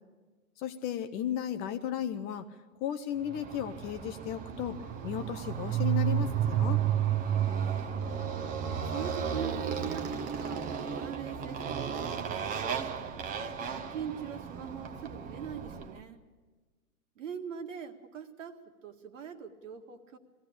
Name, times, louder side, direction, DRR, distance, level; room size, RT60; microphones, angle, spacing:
voice 1, 0.6-2.5 2.8-4.8 5.0-6.8, left 10 dB, 25° left, 10 dB, 0.6 m, -34 dB
Motorcycle, 3.3-16.0, right 9 dB, 20° right, 0.9 m, -33 dB
voice 2, 7.6-8.3 8.8-10.7 10.9-13.2 13.7-16.2 17.2-20.2, right 8 dB, 60° right, 7 dB, 1.9 m, -42 dB
21.5 x 15.5 x 8.5 m, 1.4 s
figure-of-eight pair, 115°, 43 cm